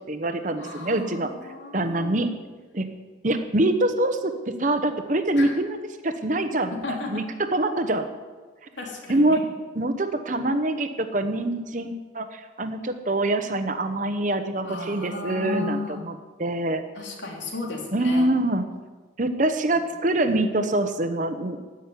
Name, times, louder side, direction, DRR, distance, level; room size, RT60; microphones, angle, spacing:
voice 1, 0.0-1.3 1.7-2.3 2.7-2.9 3.2-5.8 6.0-7.2 7.5-8.1 9.1-9.4 9.7-16.8 17.9-18.6 19.2-21.7, right 1 dB, 40° right, 8 dB, 1.0 m, -25 dB
voice 2, 0.6-2.3 5.4-5.5 6.8-7.2 8.8-9.3 14.6-16.1 16.9-18.3, left 3 dB, 80° left, 0 dB, 3.1 m, -34 dB
15.0 x 6.3 x 9.6 m, 1.3 s
head